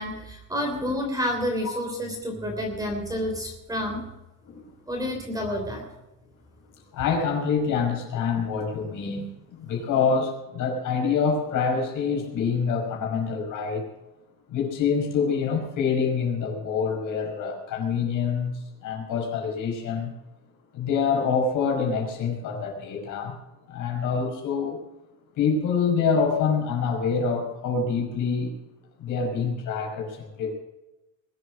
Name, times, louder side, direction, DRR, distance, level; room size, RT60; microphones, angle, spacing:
voice 1, 0.0-4.0 4.9-5.8, equal, 10° right, 3 dB, 3.2 m, -29 dB
voice 2, 6.9-13.8 14.5-20.1 20.7-23.4 23.7-24.8 25.4-28.5 29.0-30.5, left 5 dB, 55° left, 1 dB, 5.4 m, -26 dB
21.5 x 8.4 x 6.2 m, 1.0 s
cardioid pair, 165°, 37 cm